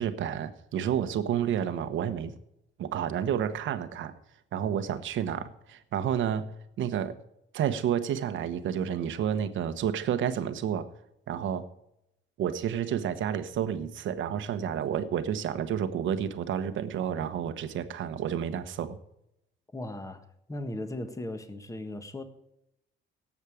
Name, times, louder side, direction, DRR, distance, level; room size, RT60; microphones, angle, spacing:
voice 1, 0.0-2.3 2.8-4.1 4.5-6.5 6.8-7.2 7.5-10.9 11.3-11.7 12.4-19.0, right 9 dB, 75° right, 11 dB, 1.1 m, -30 dB
voice 2, 19.7-22.2, left 1 dB, 15° left, 8 dB, 1.5 m, -37 dB
18.0 x 7.3 x 4.9 m, 0.82 s
cardioid pair, 90°, 20 cm